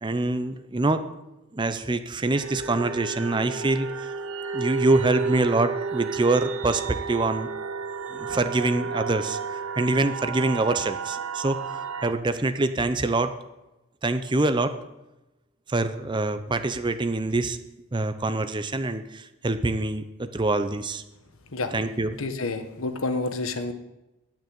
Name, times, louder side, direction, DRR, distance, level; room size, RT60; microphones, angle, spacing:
voice 1, 0.0-1.0 1.5-4.1 4.5-7.5 8.2-9.4 9.8-13.3 14.0-14.7 15.7-17.6 17.9-21.0 21.7-22.2, right 2 dB, 20° right, 10 dB, 0.5 m, -25 dB
sound 1, 2.3-12.1, right 5 dB, 70° right, 0.8 m, -32 dB
voice 2, 22.2-23.7, left 3 dB, 70° left, 8 dB, 1.2 m, -29 dB
11.5 x 6.4 x 8.6 m, 0.99 s
head